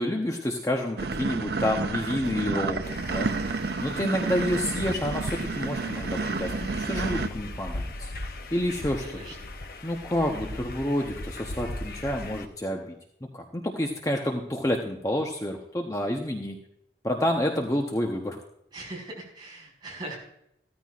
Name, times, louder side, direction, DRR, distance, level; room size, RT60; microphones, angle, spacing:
voice 1, 0.0-3.3 3.8-8.1 8.5-9.2 9.8-12.9 13.3-16.6 17.0-18.4, left 1 dB, 20° left, 2 dB, 0.9 m, -29 dB
sound 1, 1.0-7.3, right 4 dB, 60° right, 0.5 m, -30 dB
sound 2, 2.8-12.5, left 2 dB, 55° left, 0.8 m, -38 dB
voice 2, 8.8-9.5 18.7-20.2, right 2 dB, 25° right, -3 dB, 5.1 m, -40 dB
15.5 x 13.5 x 2.5 m, 0.76 s
head